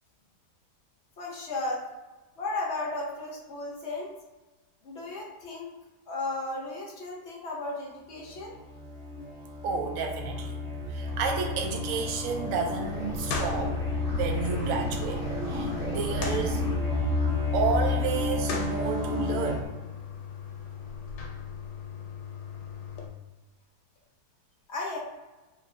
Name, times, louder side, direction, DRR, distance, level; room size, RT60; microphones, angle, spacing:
voice 1, 1.2-1.8 2.4-4.1 4.8-5.7 6.1-8.5 24.7-25.0, left 2 dB, 60° left, -2 dB, 0.7 m, -34 dB
sound 1, 8.2-19.6, left 2 dB, 30° right, 1.4 m, -31 dB
voice 2, 9.6-13.8 14.2-16.6 17.5-19.8, right 5 dB, 70° right, 2 dB, 0.8 m, -31 dB
sound 2, 11.1-23.1, left 6 dB, 90° left, 1.2 m, -39 dB
3.1 x 2.6 x 2.5 m, 1.1 s
omnidirectional pair, 1.7 m